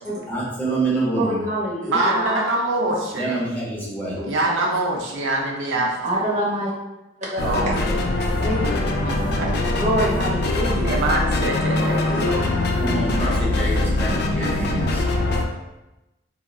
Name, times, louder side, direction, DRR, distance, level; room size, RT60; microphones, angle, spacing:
voice 1, 0.3-1.4 3.1-4.2 12.8-15.0, right 2 dB, 10° left, -6 dB, 0.6 m, -26 dB
voice 2, 1.1-2.4 2.8-3.0 4.1-4.2 4.6-4.7 6.0-6.7 7.2-8.0 8.4-8.8 9.7-10.9 11.7-12.7, right 1 dB, 40° right, -4 dB, 0.8 m, -26 dB
voice 3, 1.9-3.4 4.2-5.9 7.4-7.8 8.6-8.7 9.0-9.8 10.8-12.4, right 2 dB, 75° right, 0 dB, 0.4 m, -24 dB
sound 1, 7.4-15.4, left 2 dB, 60° left, 0.4 m, -22 dB
3.5 x 2.0 x 2.2 m, 0.99 s
head